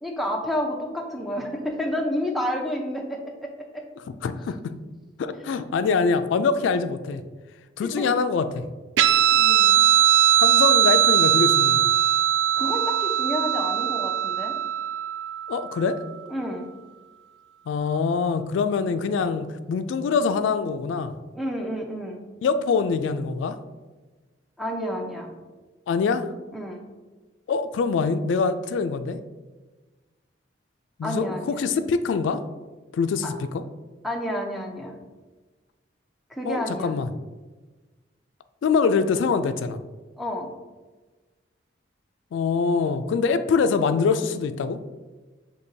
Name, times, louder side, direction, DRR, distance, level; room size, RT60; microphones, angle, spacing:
voice 1, 0.0-3.9 7.8-8.1 9.3-9.9 12.6-14.6 16.3-16.7 21.3-22.2 24.6-25.3 26.5-26.8 31.0-31.6 33.2-33.3 34.0-34.9 36.3-37.0 40.2-40.5, equal, ahead, 1 dB, 0.5 m, -30 dB
voice 2, 4.2-4.7 5.2-7.2 7.8-8.6 10.4-11.8 15.5-16.0 17.7-21.1 22.4-23.6 25.9-26.3 27.5-29.2 31.0-32.4 32.9-33.6 36.4-37.1 38.6-39.8 42.3-44.8, left 5 dB, 85° left, 10 dB, 0.3 m, -24 dB
Guitar, 9.0-15.9, right 11 dB, 90° right, 0.3 m, -20 dB
6.1 x 2.8 x 2.7 m, 1.2 s
head